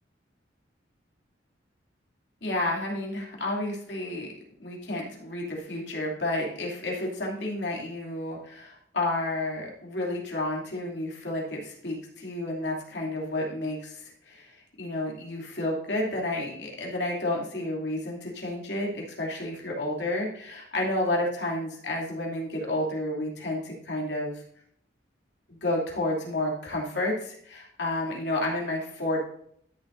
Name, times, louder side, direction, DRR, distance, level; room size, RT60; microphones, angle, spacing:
voice 1, 2.4-4.3 4.6-24.4 25.5-29.2, left 1 dB, 65° left, -2 dB, 2.7 m, -31 dB
12.5 x 7.1 x 2.6 m, 0.66 s
head